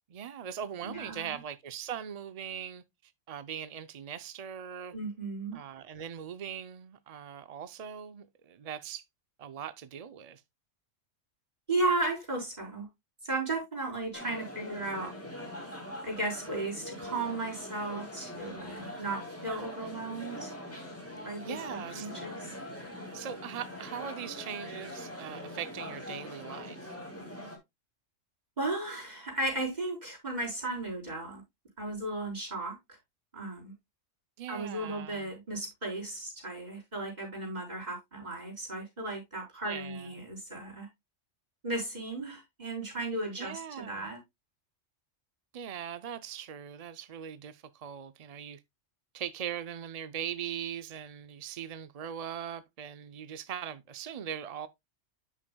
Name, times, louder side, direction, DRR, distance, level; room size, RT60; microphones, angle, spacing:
voice 1, 0.1-2.8 3.3-4.9 5.5-9.0 9.4-10.4 21.4-22.1 23.1-26.9 34.4-35.3 39.6-40.1 43.4-44.1 45.5-48.6 49.1-54.7, right 9 dB, 55° right, 0.4 m, -40 dB
voice 2, 0.8-1.4 4.9-5.6 11.7-12.9 13.2-15.1 16.0-20.5 21.2-22.5 28.6-31.4 31.8-33.0 33.3-33.7 34.5-40.9 41.6-44.2, right 2 dB, 35° right, 4.5 m, -35 dB
sound 1, 14.1-27.6, left 1 dB, 10° left, 2.4 m, -43 dB
10.5 x 6.2 x 2.2 m
omnidirectional pair, 1.3 m